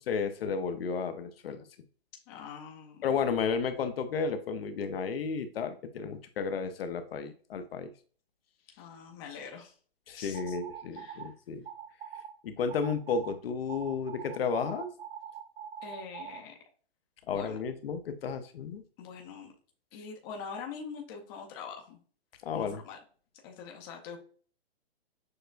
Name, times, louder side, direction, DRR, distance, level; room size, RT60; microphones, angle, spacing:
voice 1, 0.0-1.6 3.0-7.9 10.1-11.6 12.4-14.9 17.3-18.8 22.4-22.8, left 5 dB, 70° left, 9 dB, 0.6 m, -32 dB
voice 2, 2.3-3.2 8.8-9.7 10.1-10.6 10.8-11.3 15.8-16.6 17.3-17.6 19.0-19.5 19.9-22.0 22.5-23.0 23.4-24.2, left 6 dB, 20° left, 2 dB, 0.5 m, -44 dB
sound 1, 10.3-11.3 11.6-12.3 12.7-13.3 13.7-16.4, right 8 dB, 70° right, 0.5 m, -43 dB
6.4 x 2.2 x 2.4 m, 0.43 s
hypercardioid pair, 150°, 31 cm